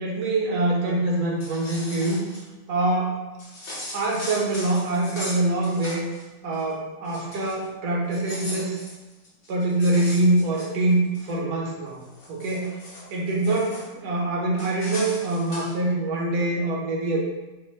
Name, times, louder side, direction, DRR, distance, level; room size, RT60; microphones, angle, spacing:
voice 1, 0.0-2.2 2.7-3.2 3.9-6.0 6.4-8.8 9.5-12.0 12.3-12.8 13.1-17.2, right 2 dB, 65° right, -2 dB, 1.2 m, -24 dB
sound 1, 1.2-2.4 3.4-6.2 6.5-6.7 7.0-7.6 8.0-11.3 11.8-13.9 14.6-15.7, left 1 dB, 60° left, 1.1 m, -39 dB
4.3 x 2.1 x 3.1 m, 1.1 s
omnidirectional pair, 2.0 m